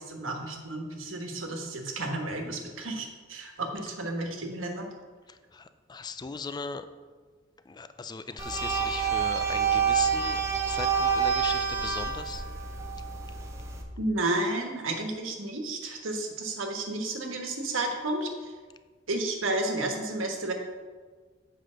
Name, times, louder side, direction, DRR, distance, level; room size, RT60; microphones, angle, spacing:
voice 1, 0.0-4.9 14.0-18.5 19.1-20.5, right 2 dB, 85° right, 2 dB, 1.4 m, -32 dB
voice 2, 5.3-6.9 7.7-10.4 10.7-12.4, left 4 dB, 20° left, 11 dB, 0.4 m, -38 dB
sound 1, 8.4-13.8, right 6 dB, 15° right, 0.9 m, -28 dB
7.8 x 5.0 x 6.2 m, 1.5 s
head